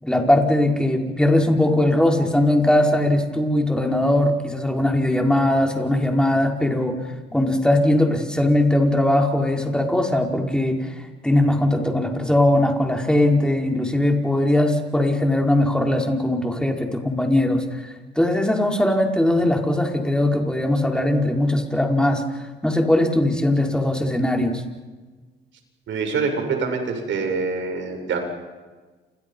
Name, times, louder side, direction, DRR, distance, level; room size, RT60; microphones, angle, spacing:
voice 1, 0.0-7.0 7.3-10.9 11.2-17.8 18.1-22.2 22.6-24.6, left 1 dB, 5° left, 1 dB, 5.1 m, -20 dB
voice 2, 25.9-28.2, right 4 dB, 75° right, 4 dB, 7.7 m, -25 dB
29.5 x 29.0 x 5.6 m, 1.3 s
cardioid pair, 90°, 20 cm